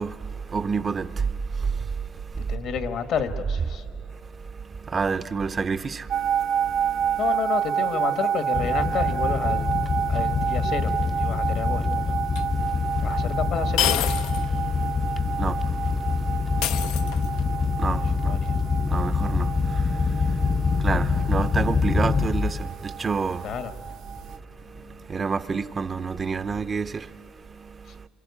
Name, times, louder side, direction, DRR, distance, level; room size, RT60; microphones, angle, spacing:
voice 1, 0.0-2.6 4.1-7.2 12.5-13.2 14.4-17.2 17.8-18.4 18.8-23.6 24.6-28.1, right 5 dB, 30° right, 0.5 m, -30 dB
voice 2, 2.5-3.8 4.9-5.1 7.2-9.7 10.1-10.9 11.2-12.1 13.0-13.9 17.9-18.6 23.4-23.7, left 7 dB, 65° left, 1.6 m, -30 dB
sound 1, 6.1-24.4, right 8 dB, 65° right, 0.7 m, -30 dB
sound 2, 8.5-22.7 23.0-23.4 23.8-23.9 24.2-24.3, left 5 dB, 30° left, 0.6 m, -25 dB
sound 3, 12.3-12.4 13.8-14.5 14.8-14.9 16.6-17.5, left 11 dB, 90° left, 0.6 m, -26 dB
26.0 x 25.5 x 8.5 m
cardioid pair, 110°, 0 cm